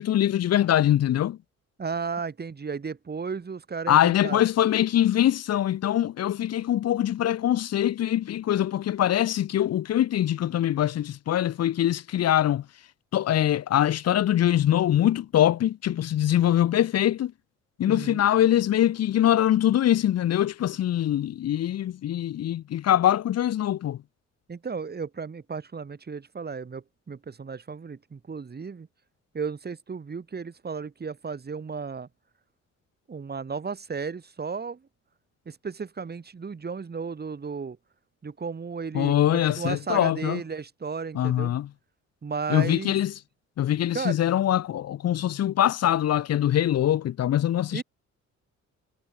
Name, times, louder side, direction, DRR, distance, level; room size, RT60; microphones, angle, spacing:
voice 1, 0.0-1.4 3.9-12.6 13.1-17.3 17.8-24.0 38.9-40.4 41.1-41.7 42.5-43.1 43.6-47.8, left 11 dB, 55° left, 0.8 m, -23 dB
voice 2, 1.8-4.4 17.8-18.2 24.5-28.9 29.3-32.1 33.1-34.8 35.5-37.8 38.2-41.5 42.2-43.0 43.9-44.2 47.7-47.8, right 5 dB, 30° right, 3.0 m, -34 dB
cardioid pair, 90°, 30 cm